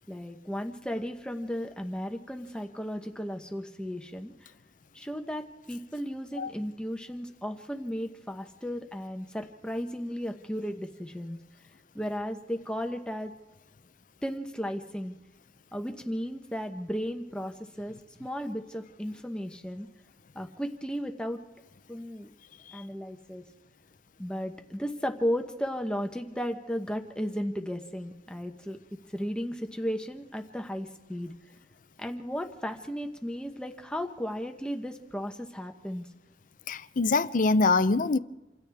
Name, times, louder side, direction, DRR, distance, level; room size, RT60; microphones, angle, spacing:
voice 1, 0.1-4.3 4.9-11.4 11.9-13.3 14.2-15.2 15.7-17.9 18.2-19.9 20.3-21.4 21.9-22.3 22.7-23.4 24.2-28.8 29.1-31.3 32.0-36.1, equal, 5° left, 1.0 m, -35 dB
voice 2, 36.7-38.2, left 3 dB, 50° left, 0.6 m, -24 dB
28.0 x 26.5 x 3.5 m
head